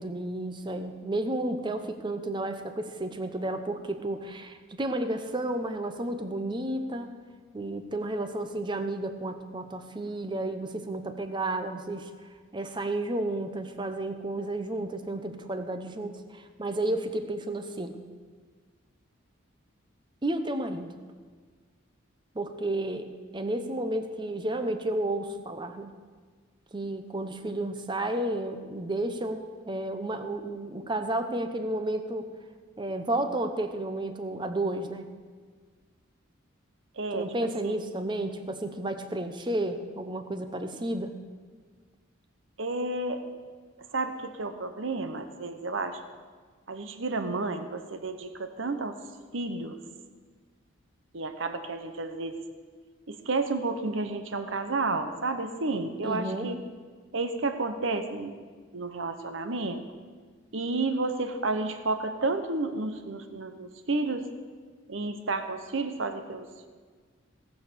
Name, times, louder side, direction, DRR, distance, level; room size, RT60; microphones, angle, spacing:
voice 1, 0.0-7.2 7.5-12.1 12.5-18.0 20.2-20.9 22.3-23.1 23.3-26.0 26.7-32.3 32.8-35.1 37.1-41.2 56.0-56.5, right 1 dB, 20° right, 8 dB, 0.8 m, -32 dB
voice 2, 37.0-37.3 37.6-37.8 42.6-43.2 43.9-46.0 46.7-49.0 49.3-49.8 51.1-52.4 53.1-56.6 57.1-58.3 58.7-59.8 60.5-64.3 64.9-66.7, right 3 dB, 65° right, 8 dB, 0.9 m, -31 dB
18.0 x 6.6 x 6.8 m, 1.6 s
head